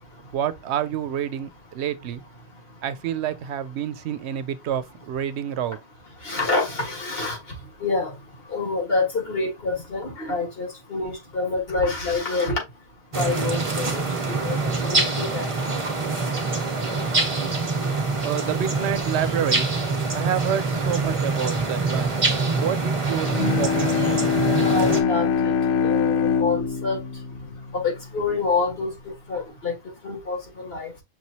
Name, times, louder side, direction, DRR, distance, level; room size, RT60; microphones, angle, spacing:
voice 1, 0.3-1.5 1.7-2.2 2.8-5.8 18.2-19.7 20.1-22.1 22.5-23.9, right 10 dB, 85° right, 0.8 m, -28 dB
voice 2, 6.2-7.4 7.8-8.1 8.5-12.6 13.2-14.0 14.4-14.6 14.8-15.8 24.6-25.5 25.8-27.0 27.8-28.9 29.3-29.7 30.0-30.9, left 3 dB, 65° left, 1.9 m, -27 dB
sound 1, 13.1-25.0, right 3 dB, 35° right, 0.9 m, -25 dB
Bowed string instrument, 23.2-28.5, left 6 dB, 85° left, 0.8 m, -24 dB
6.0 x 3.0 x 2.7 m
omnidirectional pair, 1.1 m